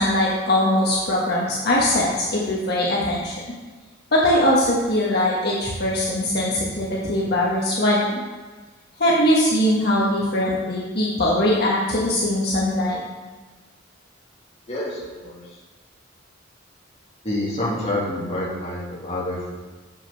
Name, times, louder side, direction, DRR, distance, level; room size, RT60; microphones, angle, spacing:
voice 1, 0.0-3.3 4.1-8.2 9.0-13.0, left 1 dB, 55° left, -5 dB, 1.3 m, -21 dB
voice 2, 14.7-15.6 17.2-19.6, left 1 dB, 35° left, -5 dB, 2.0 m, -28 dB
7.3 x 6.1 x 5.5 m, 1.3 s
head